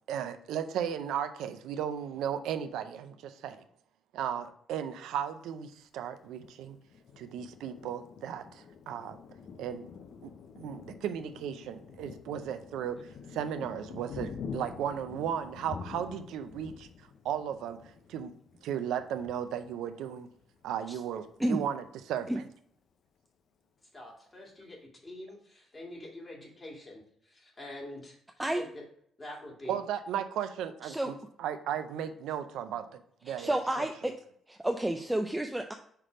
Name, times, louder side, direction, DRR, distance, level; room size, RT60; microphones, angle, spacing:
voice 1, 0.1-3.6 4.1-6.8 7.2-9.2 9.6-9.9 10.2-10.3 10.6-13.0 13.3-16.9 17.2-18.3 18.6-20.3 20.6-22.4 29.7-32.9 33.2-33.9, right 9 dB, 85° right, 9 dB, 0.5 m, -35 dB
Thunder, 6.4-20.7 21.2-21.4 21.7-22.3, left 6 dB, 60° left, 0.6 m, -47 dB
voice 2, 23.9-24.8 25.0-28.2 28.5-28.8 29.2-29.8, left 1 dB, 25° left, -1 dB, 2.1 m, -45 dB
voice 3, 33.3-34.1 34.5-35.7, right 1 dB, 10° right, 5 dB, 0.4 m, -30 dB
5.8 x 3.3 x 4.9 m, 0.65 s
cardioid pair, 90°, 0 cm